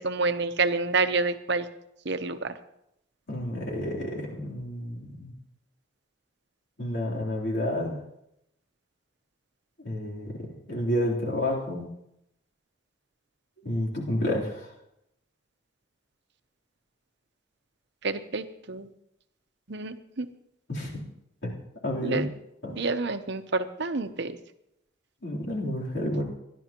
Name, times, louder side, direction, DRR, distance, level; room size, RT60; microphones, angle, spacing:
voice 1, 0.0-1.7 2.0-2.5 18.0-18.9 19.7-20.3 22.0-22.3 22.7-24.4, right 3 dB, 60° right, 9 dB, 0.9 m, -28 dB
voice 2, 3.3-5.3 6.8-8.0 9.8-11.9 13.6-14.7 20.7-21.0 21.8-22.3 22.6-22.8 25.2-26.2, left 1 dB, 60° left, -4 dB, 3.6 m, -30 dB
29.0 x 11.5 x 3.0 m, 0.81 s
head